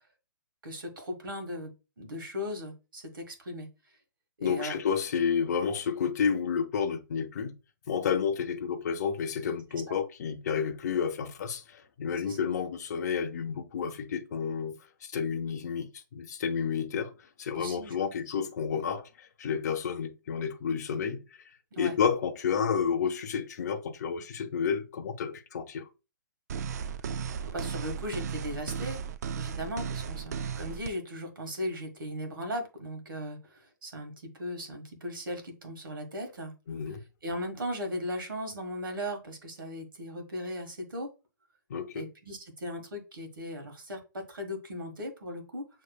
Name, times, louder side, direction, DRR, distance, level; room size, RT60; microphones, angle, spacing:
voice 1, 0.6-1.7 2.0-3.7 4.4-4.8 9.7-10.0 12.2-12.4 17.5-18.0 21.7-21.9 27.5-29.0 29.3-36.5 37.2-41.1 41.9-45.8, equal, 90° right, 1.6 m, -37 dB
voice 2, 4.4-7.5 7.9-14.7 15.0-17.1 17.4-21.2 21.8-25.9 36.7-37.0 41.7-42.0, left 6 dB, 55° left, 0.7 m, -30 dB
sound 1, 26.5-30.9, right 7 dB, 50° right, 0.4 m, -35 dB
6.5 x 3.0 x 2.3 m
hypercardioid pair, 150°, 11 cm